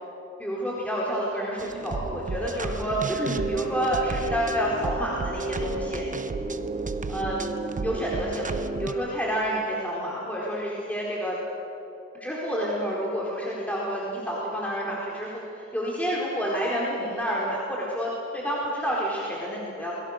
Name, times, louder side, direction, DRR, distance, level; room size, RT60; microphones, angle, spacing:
voice 1, 0.4-6.0 7.1-7.4 7.8-11.3 12.2-19.9, equal, 5° left, -5 dB, 4.3 m, -29 dB
sound 1, 1.6-8.9, right 3 dB, 25° right, 1.0 m, -32 dB
28.0 x 22.0 x 6.6 m, 2.8 s
wide cardioid pair, 135°, 29 cm